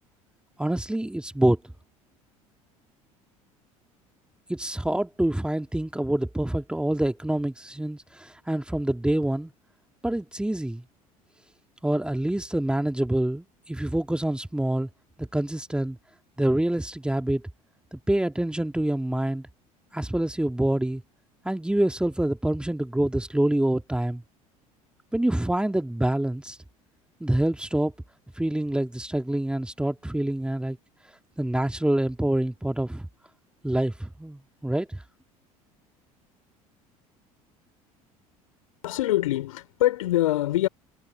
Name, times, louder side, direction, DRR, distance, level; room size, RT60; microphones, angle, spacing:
voice 1, 0.6-1.6 4.5-9.5 10.0-10.8 11.8-14.9 15.2-16.0 16.4-17.4 17.9-19.5 19.9-21.0 21.4-24.2 25.1-26.6 27.2-27.9 28.4-30.8 31.4-33.1 33.6-35.0, right 1 dB, 5° right, 2.3 m, -26 dB
voice 2, 38.8-40.7, left 15 dB, 70° left, 4.2 m, -24 dB
figure-of-eight pair, 65°, 19 cm